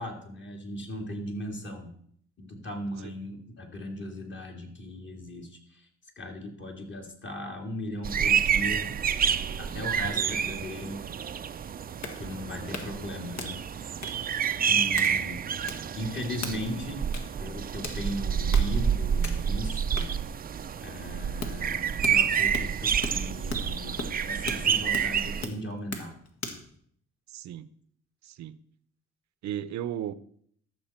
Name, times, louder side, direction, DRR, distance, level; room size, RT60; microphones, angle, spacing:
voice 1, 0.0-1.9 2.4-5.9 6.2-8.9 9.6-11.0 12.2-13.6 14.6-15.4 15.7-17.0 17.4-20.1 20.8-26.1, left 1 dB, 40° left, 2 dB, 2.5 m, -37 dB
sound 1, 8.0-25.5, right 8 dB, 30° right, 0.4 m, -28 dB
sound 2, 11.5-26.7, left 3 dB, 65° left, 1.7 m, -40 dB
voice 2, 27.3-27.7 28.2-28.6 29.4-30.1, right 11 dB, 65° right, 16 dB, 0.7 m, -35 dB
13.5 x 6.5 x 4.3 m, 0.64 s
cardioid pair, 90°, 30 cm